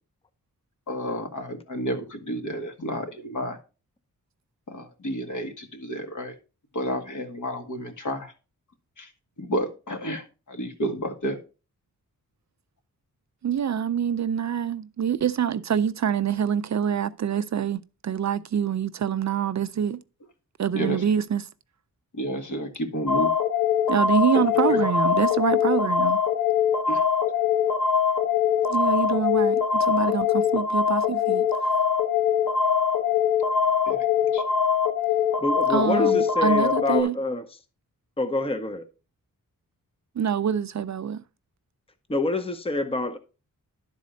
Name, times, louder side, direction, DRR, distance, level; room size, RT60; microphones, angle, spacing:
voice 1, 0.9-3.6 4.7-6.3 6.7-8.3 9.0-9.1 9.4-11.4 20.7-21.0 22.1-23.3 24.3-24.8 26.9-27.0 33.9-34.1 34.3-34.4, equal, 55° left, 1.7 m, -31 dB
voice 2, 13.4-20.0 20.6-21.5 23.9-26.2 28.7-31.5 35.7-37.2 40.2-41.2, right 8 dB, 55° right, 0.4 m, -25 dB
sound 1, 23.1-37.0, left 7 dB, 85° left, 1.2 m, -23 dB
voice 3, 35.4-37.5 38.2-38.8 42.1-43.2, left 2 dB, 15° left, 0.7 m, -27 dB
11.5 x 4.2 x 5.1 m
wide cardioid pair, 165°, 35 cm